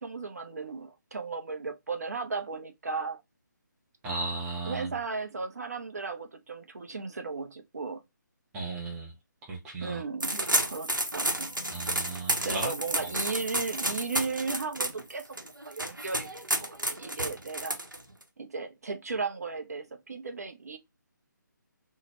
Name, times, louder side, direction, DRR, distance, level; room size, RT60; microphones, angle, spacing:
voice 1, 0.0-3.2 4.6-8.0 9.8-11.5 12.4-17.8 18.4-20.8, right 4 dB, 55° right, 0.6 m, -36 dB
voice 2, 4.0-4.9 8.5-9.1 9.5-10.0 11.7-12.7 13.0-13.1, right 3 dB, 5° right, 0.4 m, -35 dB
sound 1, 10.2-18.2, right 1 dB, 80° right, 0.8 m, -31 dB
3.7 x 2.1 x 2.5 m
figure-of-eight pair, 145°, 11 cm